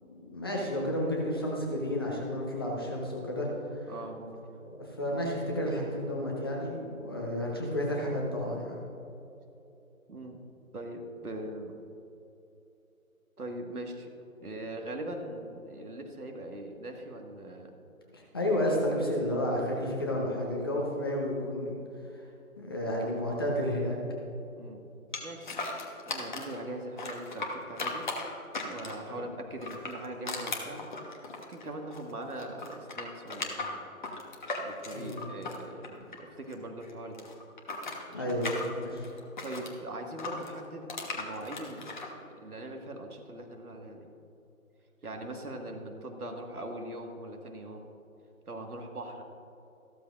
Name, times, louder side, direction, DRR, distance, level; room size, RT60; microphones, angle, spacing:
voice 1, 0.0-3.9 4.6-8.8 18.1-21.7 22.1-22.2 22.6-24.0 29.1-29.3 34.9-35.2 38.1-39.1, equal, 15° left, -3 dB, 0.9 m, -31 dB
voice 2, 3.9-4.4 10.1-10.4 10.7-11.8 13.4-14.1 14.4-17.7 24.5-24.8 25.2-28.0 28.5-30.9 31.5-33.8 34.6-37.3 38.1-38.3 39.4-42.1 42.4-44.1 45.0-47.9 48.5-49.2, right 1 dB, 90° right, 3 dB, 1.9 m, -41 dB
sound 1, 25.1-26.6 27.0-29.1 29.6-32.1 32.4-36.5 36.8-39.7 40.2-42.1, left 3 dB, 35° left, 1.2 m, -37 dB
14.5 x 13.0 x 2.5 m, 2.9 s
figure-of-eight pair, 160°, 43 cm